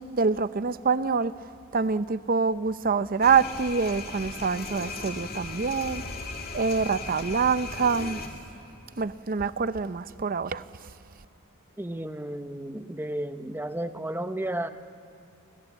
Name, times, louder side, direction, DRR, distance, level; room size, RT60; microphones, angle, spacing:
voice 1, 0.0-1.3 1.7-6.0 6.5-8.2 9.0-10.6, right 5 dB, 40° right, 0.6 m, -25 dB
sound 1, 3.2-8.3, left 3 dB, 40° left, 2.5 m, -37 dB
voice 2, 11.8-14.7, right 1 dB, 10° right, 0.8 m, -33 dB
29.0 x 23.5 x 8.2 m
head